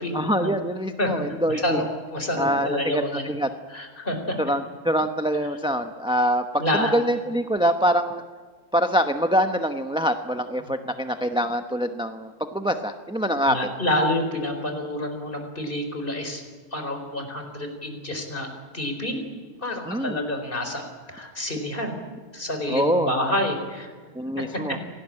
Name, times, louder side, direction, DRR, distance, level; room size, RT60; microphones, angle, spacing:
voice 1, 0.1-1.8 2.4-3.5 4.4-6.4 6.7-8.2 8.7-13.6 19.8-20.2 22.7-23.1 24.1-24.8, equal, 5° right, 7 dB, 0.7 m, -24 dB
voice 2, 1.5-3.3 3.7-4.4 6.6-7.0 13.5-16.4 16.7-19.2 19.6-21.9 22.3-23.9 24.7-24.8, left 1 dB, 35° left, 5 dB, 4.6 m, -28 dB
26.5 x 19.0 x 8.9 m, 1.5 s
omnidirectional pair, 1.6 m